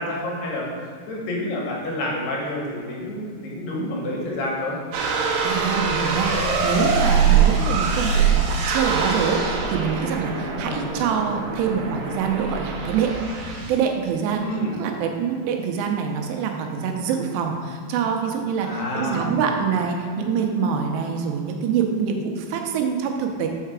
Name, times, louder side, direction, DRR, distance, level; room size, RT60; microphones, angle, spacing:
voice 1, 0.0-4.8 10.6-10.9 14.4-14.7 18.6-19.3, left 1 dB, 75° left, -3 dB, 3.2 m, -29 dB
sound 1, 4.9-13.8, right 6 dB, 70° right, 2.0 m, -23 dB
voice 2, 5.4-13.1 13.5-14.5 14.7-23.5, right 6 dB, 85° right, 3 dB, 2.8 m, -25 dB
5.8 x 5.5 x 6.1 m, 2.3 s
omnidirectional pair, 5.1 m